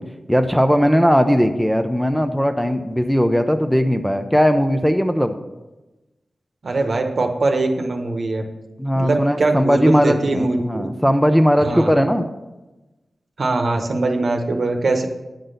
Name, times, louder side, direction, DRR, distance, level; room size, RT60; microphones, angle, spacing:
voice 1, 0.3-5.3 8.8-12.3, equal, ahead, 7 dB, 0.5 m, -18 dB
voice 2, 6.6-8.4 8.9-10.9 11.6-11.9 13.4-15.1, right 2 dB, 60° right, 4 dB, 0.9 m, -21 dB
8.9 x 3.9 x 6.6 m, 1.1 s
wide cardioid pair, 85°, 0 cm